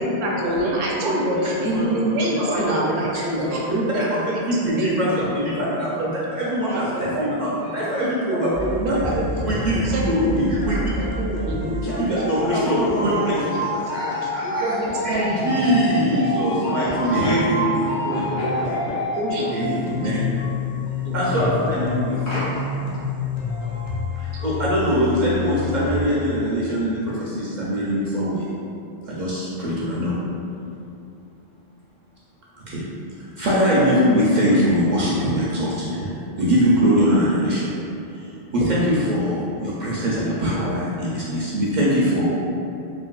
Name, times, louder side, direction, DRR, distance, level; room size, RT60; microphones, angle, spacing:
voice 1, 0.0-4.3 4.6-5.2 5.7-6.1 6.7-7.2 8.0-10.3 10.7-12.1 12.4-13.7 14.0-16.0 16.6-17.1 17.3-18.5 19.2-20.2 20.5-20.6 21.0-21.6, right 1 dB, 75° right, -3 dB, 0.9 m, -27 dB
voice 2, 1.6-2.0 2.3-2.6 3.1-3.9 7.6-7.7 11.8-12.0 17.1-17.6 17.8-19.0 19.4-20.4 22.2-22.6 23.4-23.7, equal, 70° left, -10 dB, 1.3 m, -31 dB
voice 3, 4.1-5.9 6.3-8.5 9.4-11.1 12.0-13.3 13.7-14.7 15.0-17.9 18.1-18.2 19.5-20.2 21.1-22.2 24.2-28.5 29.1-30.1 32.7-32.9 33.4-37.7 38.5-42.3, equal, 60° right, -7 dB, 0.5 m, -22 dB
sound 1, 8.5-26.0, left 2 dB, 90° left, 0.9 m, -28 dB
3.4 x 2.7 x 2.3 m, 2.7 s
omnidirectional pair, 1.2 m